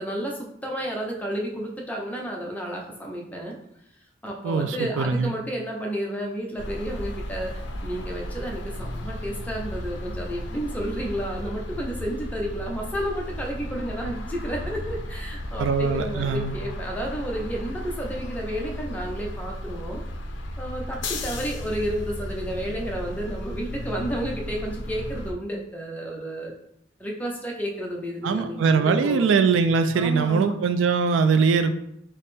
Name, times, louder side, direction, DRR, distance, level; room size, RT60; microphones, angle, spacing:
voice 1, 0.0-3.6 4.2-20.0 20.6-26.5 27.0-29.3 29.9-30.6, right 1 dB, 10° left, -1 dB, 0.5 m, -31 dB
voice 2, 4.4-5.3 15.6-16.6 28.2-31.7, right 5 dB, 80° right, 9 dB, 0.3 m, -22 dB
sound 1, 6.6-25.3, left 1 dB, 70° left, 0.4 m, -34 dB
3.5 x 2.1 x 4.1 m, 0.74 s
head